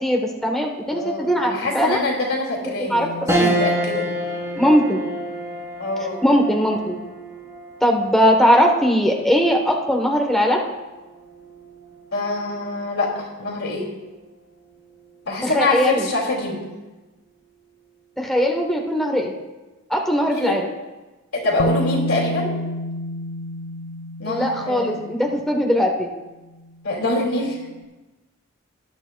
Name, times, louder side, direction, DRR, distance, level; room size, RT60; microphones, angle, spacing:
voice 1, 0.0-2.0 2.8-3.1 3.4-3.6 4.5-5.0 6.2-7.0 7.8-10.6 15.4-16.1 18.2-19.3 19.9-20.7 24.2-26.1, equal, ahead, 0 dB, 1.0 m, -19 dB
voice 2, 0.9-4.1 5.8-6.2 12.1-13.9 15.3-16.6 20.2-20.6 21.3-22.5 24.2-25.1 26.8-27.6, left 2 dB, 90° left, -3 dB, 2.5 m, -25 dB
sound 1, 3.3-12.9 13.4-13.5 14.8-15.2, right 1 dB, 15° right, 2.7 m, -29 dB
Bass guitar, 21.6-25.5 26.7-26.8, left 1 dB, 55° left, 0.6 m, -29 dB
19.0 x 11.0 x 2.3 m, 1.1 s
head